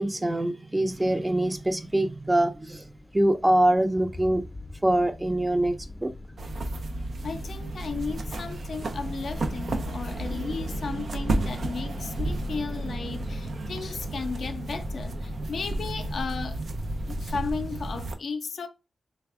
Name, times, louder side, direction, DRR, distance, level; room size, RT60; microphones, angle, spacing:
voice 1, 0.0-2.9 3.1-4.4 4.8-5.8 6.0-6.1, right 1 dB, 20° right, 0.5 m, -24 dB
sound 1, 0.9-18.0, left 2 dB, 25° left, 0.5 m, -43 dB
sound 2, 6.4-18.1, right 2 dB, 75° right, 0.5 m, -32 dB
voice 2, 7.2-16.6 17.1-18.7, left 5 dB, 75° left, 0.4 m, -35 dB
3.3 x 2.2 x 3.4 m
cardioid pair, 50°, 0 cm